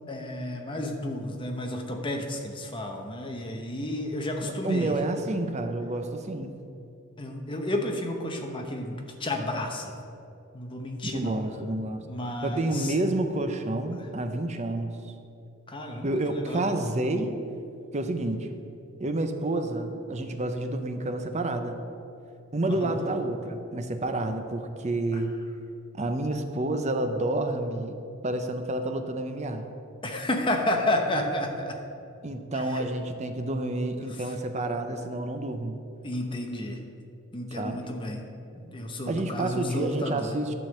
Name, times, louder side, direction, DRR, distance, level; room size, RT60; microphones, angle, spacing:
voice 1, 0.1-4.9 7.2-10.0 10.5-11.4 12.0-12.9 15.7-16.7 22.7-23.0 25.1-25.2 30.0-31.8 32.5-32.9 34.1-34.3 36.0-36.8 37.3-38.2 38.6-40.4, left 1 dB, 25° left, 2 dB, 0.9 m, -31 dB
voice 2, 4.4-6.5 11.0-12.0 12.4-15.0 16.0-17.4 17.9-18.5 19.0-21.8 22.5-25.3 25.9-28.0 28.2-29.7 32.2-35.8 37.5-37.8 39.1-40.5, right 2 dB, 30° right, 7 dB, 0.6 m, -29 dB
11.5 x 3.8 x 7.6 m, 2.6 s
head